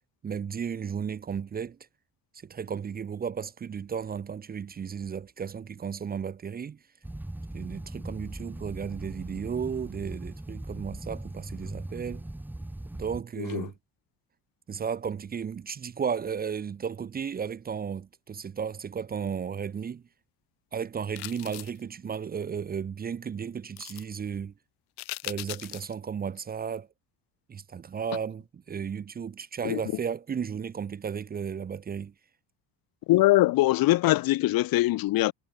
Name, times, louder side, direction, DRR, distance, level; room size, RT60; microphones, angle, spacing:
voice 1, 0.2-1.8 2.4-6.8 7.5-12.2 12.9-13.7 14.7-20.0 20.7-24.5 25.2-26.9 27.5-32.1, right 7 dB, 25° right, 1.3 m, -34 dB
sound 1, 7.0-13.2, right 1 dB, 5° right, 3.6 m, -39 dB
voice 2, 13.4-13.7 29.6-29.8 33.1-35.3, left 17 dB, 60° left, 3.0 m, -22 dB
sound 2, 21.1-21.8 23.8-24.0 25.0-25.9 26.4-26.5, left 21 dB, 80° left, 3.1 m, -39 dB
cardioid pair, 170°, 38 cm